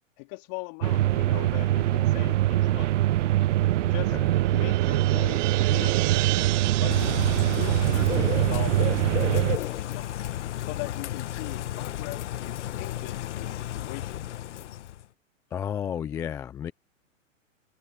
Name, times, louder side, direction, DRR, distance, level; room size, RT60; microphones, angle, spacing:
voice 1, 0.2-2.9 3.9-4.2 4.5-6.5 6.8-7.0 7.4-10.3 10.6-14.8, left 34 dB, 40° left, 2.9 m, -40 dB
sound 1, 0.8-9.6, right 14 dB, 65° right, 0.5 m, -23 dB
sound 2, 3.3-9.8, right 29 dB, 35° right, 1.0 m, -35 dB
voice 2, 3.9-4.3 15.5-16.7, left 9 dB, 5° left, 0.4 m, -33 dB
Bird / Rain, 6.9-15.1, left 13 dB, 60° left, 1.6 m, -33 dB
hypercardioid pair, 120°, 40 cm